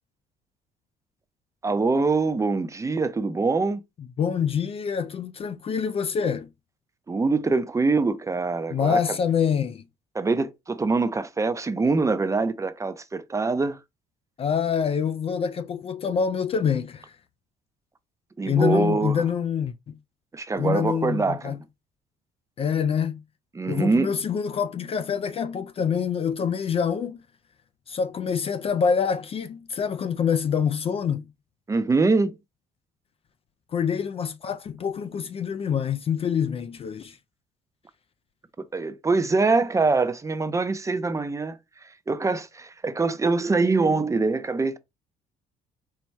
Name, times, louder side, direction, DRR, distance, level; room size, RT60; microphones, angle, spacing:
voice 1, 1.6-3.8 7.1-9.2 10.1-13.8 18.4-19.2 20.3-21.6 23.5-24.2 31.7-32.4 38.6-44.8, right 3 dB, 20° right, 0.5 m, -24 dB
voice 2, 4.2-6.5 8.7-9.8 14.4-17.2 18.5-20.0 20.6-21.6 22.6-23.2 23.7-27.2 27.9-31.2 33.7-37.2, left 7 dB, 35° left, 0.3 m, -26 dB
4.6 x 2.2 x 4.1 m
cardioid pair, 110°, 17 cm